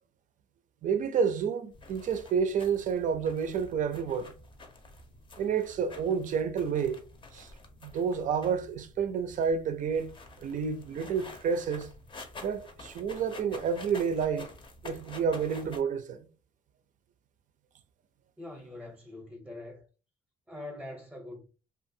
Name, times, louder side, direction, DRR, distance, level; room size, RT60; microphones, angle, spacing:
voice 1, 0.8-4.3 5.4-7.0 7.3-7.5 7.8-10.1 10.4-11.9 12.4-14.5 14.8-16.2, right 6 dB, 50° right, 0.5 m, -29 dB
sound 1, 1.7-15.8, left 2 dB, 30° left, 0.6 m, -49 dB
voice 2, 18.4-19.8 20.5-21.5, left 2 dB, 5° right, 0.8 m, -43 dB
2.6 x 2.4 x 2.6 m
cardioid pair, 110°, 17 cm